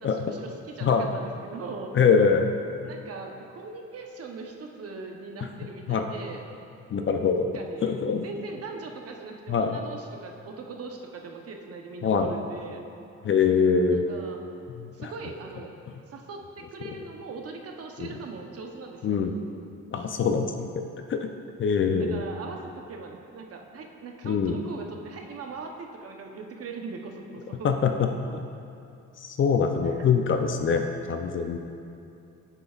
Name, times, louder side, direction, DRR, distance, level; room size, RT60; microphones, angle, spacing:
voice 1, 0.0-1.9 2.8-6.4 7.5-12.8 13.8-14.4 14.9-15.7 16.1-19.2 22.0-22.6 22.9-27.6 29.8-30.0, right 4 dB, 50° right, 2 dB, 0.9 m, -40 dB
voice 2, 1.9-2.5 5.9-6.1 6.9-7.5 7.8-8.2 9.5-9.7 12.0-12.3 13.2-14.0 14.8-15.1 18.0-18.1 19.0-19.3 19.9-20.7 21.1-21.3 21.6-22.2 24.2-24.6 27.6-27.9 28.3-28.4 29.2-31.6, left 6 dB, 40° left, 5 dB, 0.5 m, -23 dB
9.3 x 6.9 x 2.4 m, 2.7 s
cardioid pair, 90°, 30 cm